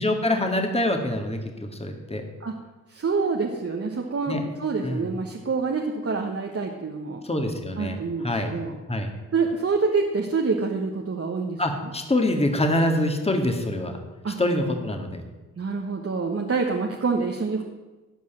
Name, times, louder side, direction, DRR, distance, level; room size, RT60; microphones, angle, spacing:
voice 1, 0.0-2.2 4.3-4.4 4.8-5.1 7.2-8.5 8.9-9.1 11.6-13.9 14.4-15.2, left 1 dB, 15° left, 4 dB, 2.0 m, -25 dB
voice 2, 2.9-7.2 7.8-8.7 9.3-11.9 14.2-14.4 15.6-17.6, right 4 dB, 40° right, 1 dB, 1.4 m, -27 dB
12.5 x 5.5 x 9.0 m, 1.2 s
cardioid pair, 65°, 35 cm